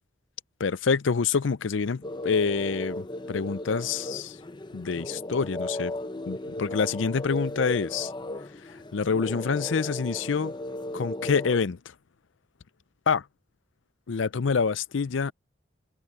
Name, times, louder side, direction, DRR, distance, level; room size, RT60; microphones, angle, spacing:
voice 1, 0.6-4.4 4.7-5.9 6.3-8.1 8.9-10.5 10.9-11.8 13.1-13.2 14.1-15.3, left 5 dB, 70° left, 0.5 m, -26 dB
sound 1, 2.0-11.7, left 1 dB, 25° left, 0.7 m, -36 dB
head